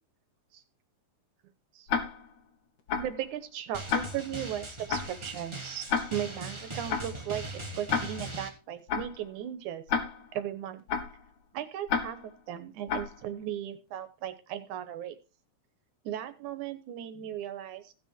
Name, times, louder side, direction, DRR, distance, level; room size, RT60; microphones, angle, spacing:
Tick-tock, 1.9-2.4 2.9-3.2 3.9-4.4 4.9-5.2 5.9-6.4 6.9-7.2 7.9-8.4 8.9-9.2 9.9-10.4 10.9-11.2 11.9-12.4 12.9-13.2, left 6 dB, 75° left, 2.8 m, -31 dB
voice 1, 3.0-9.8 10.3-10.8 11.5-15.2 16.0-17.9, right 10 dB, 85° right, 11 dB, 2.5 m, -37 dB
Drum, 3.7-8.5, right 2 dB, 30° right, 0.5 m, -40 dB
15.5 x 6.5 x 4.3 m, 0.32 s
omnidirectional pair, 3.4 m